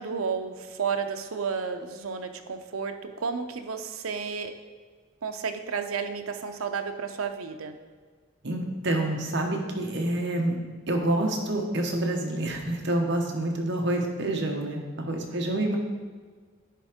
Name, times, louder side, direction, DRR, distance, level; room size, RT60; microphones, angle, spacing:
voice 1, 0.0-4.5 5.2-7.8 15.3-15.4, right 5 dB, 85° right, 6 dB, 0.6 m, -32 dB
voice 2, 8.4-10.6 10.9-15.8, right 1 dB, 55° right, 1 dB, 1.1 m, -27 dB
10.5 x 3.6 x 5.0 m, 1.5 s
head